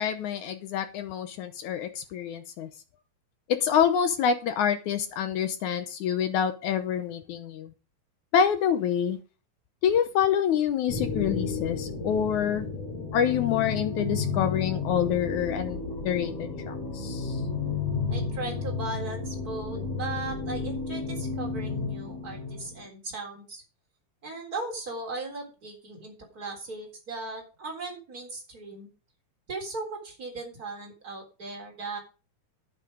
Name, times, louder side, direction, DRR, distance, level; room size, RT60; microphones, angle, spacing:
voice 1, 0.0-2.7 3.5-7.7 8.3-9.2 9.8-12.7 13.1-15.8 16.0-17.4, left 8 dB, 75° left, 9 dB, 1.9 m, -27 dB
sound 1, 10.9-22.9, left 4 dB, 50° left, 4.7 m, -32 dB
voice 2, 18.1-23.6 24.2-28.9 29.5-32.0, right 3 dB, 25° right, 0 dB, 4.0 m, -37 dB
10.5 x 9.2 x 5.0 m, 0.33 s
omnidirectional pair, 4.3 m